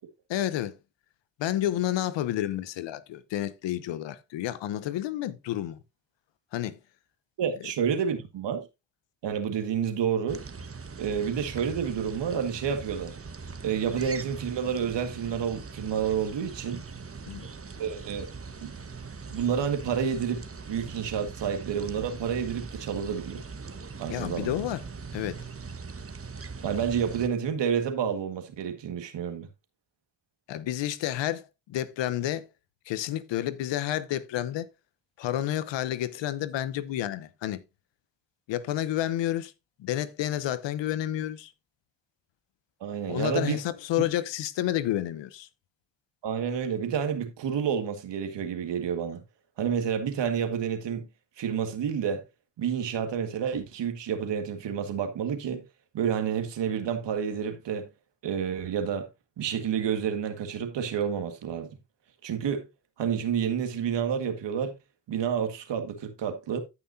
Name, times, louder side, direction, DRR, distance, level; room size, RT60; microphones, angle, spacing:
voice 1, 0.3-0.8 1.4-5.8 6.5-6.8 17.3-17.5 24.1-24.8 25.1-25.4 30.5-32.5 32.9-34.7 35.2-37.6 38.5-39.5 39.8-41.5 43.1-45.5, left 12 dB, 85° left, 0.8 m, -30 dB
voice 2, 7.4-8.7 9.2-10.4 11.0-13.2 13.6-16.8 17.8-18.3 18.6-18.7 19.3-20.4 20.7-23.4 24.0-24.5 26.6-29.5 42.8-43.6 46.2-49.2 49.6-51.1 51.4-52.2 52.6-55.6 55.9-57.9 58.2-59.1 59.4-61.7 62.2-62.7 63.0-64.7 65.1-66.6, right 7 dB, 75° right, 1.8 m, -29 dB
sound 1, 10.3-27.3, right 4 dB, 30° right, 1.2 m, -41 dB
14.5 x 5.9 x 2.7 m
supercardioid pair, 50°, 43 cm